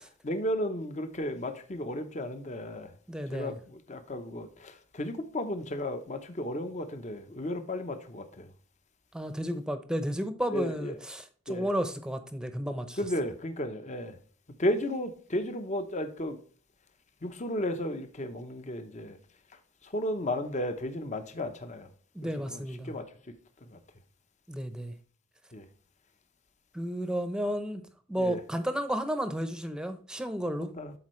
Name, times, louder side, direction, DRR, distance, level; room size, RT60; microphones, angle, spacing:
voice 1, 0.2-2.9 3.3-8.5 10.5-11.0 11.5-11.7 13.0-14.2 14.6-16.4 17.2-19.2 19.8-21.9 22.5-23.1 23.7-23.8 25.5-25.7 28.2-28.4 30.6-30.9, left 1 dB, 35° left, 0.9 m, -34 dB
voice 2, 3.1-3.5 9.1-13.0 22.1-22.9 24.5-24.9 26.7-27.8 28.1-30.7, equal, 5° right, 0.8 m, -32 dB
12.0 x 4.5 x 3.2 m
head